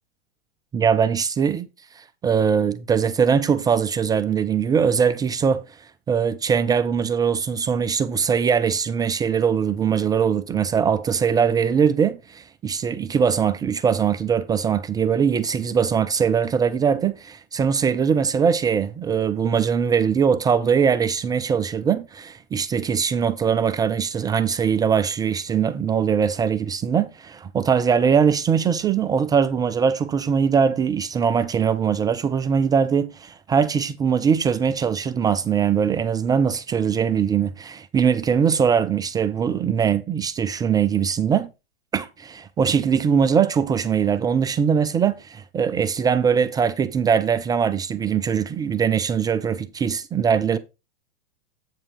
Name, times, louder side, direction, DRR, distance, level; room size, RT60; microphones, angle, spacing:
voice 1, 0.7-1.7 1.9-41.5 41.9-50.6, right 7 dB, 10° right, 0.4 m, -21 dB
8.3 x 7.3 x 3.1 m
figure-of-eight pair, 105°, 31 cm